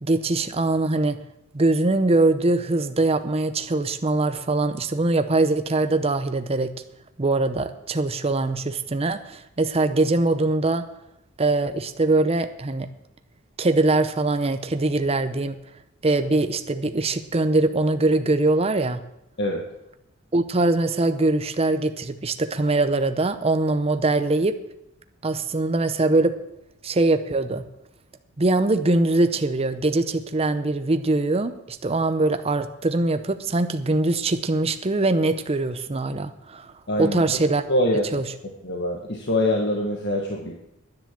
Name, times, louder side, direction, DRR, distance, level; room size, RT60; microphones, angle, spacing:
voice 1, 0.0-1.2 1.5-6.7 7.2-10.9 11.4-12.9 13.6-15.6 16.0-19.0 20.3-24.6 25.2-26.3 26.8-27.6 28.4-36.7 37.0-37.6 38.1-38.2, right 2 dB, 30° right, 9 dB, 0.7 m, -22 dB
voice 2, 36.9-37.4 37.7-38.2 38.6-40.5, left 1 dB, 55° left, 0 dB, 1.6 m, -24 dB
10.5 x 10.0 x 7.4 m, 0.85 s
head